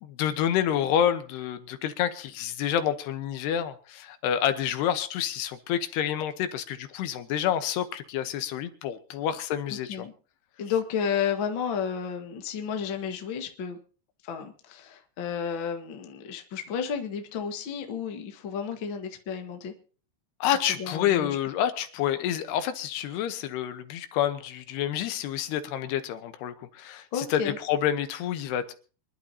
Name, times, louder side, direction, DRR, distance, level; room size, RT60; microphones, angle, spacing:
voice 1, 0.0-10.1 20.4-28.7, left 10 dB, 80° left, 3.0 m, -28 dB
voice 2, 9.7-10.1 10.6-13.8 14.2-19.7 20.8-21.4 27.1-27.6, left 7 dB, 55° left, 1.4 m, -32 dB
26.0 x 11.5 x 2.8 m
omnidirectional pair, 4.8 m